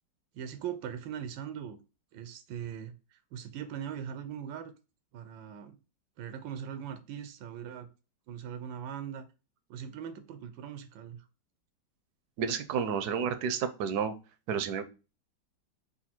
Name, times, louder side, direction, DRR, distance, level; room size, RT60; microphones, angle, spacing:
voice 1, 0.3-1.8 2.1-4.7 5.1-5.8 6.2-7.9 8.3-9.2 9.7-11.2, right 8 dB, 90° right, 9 dB, 1.3 m, -40 dB
voice 2, 12.4-14.1 14.5-14.8, right 7 dB, 70° right, 10 dB, 1.0 m, -30 dB
4.1 x 2.3 x 4.2 m, 0.31 s
omnidirectional pair, 2.0 m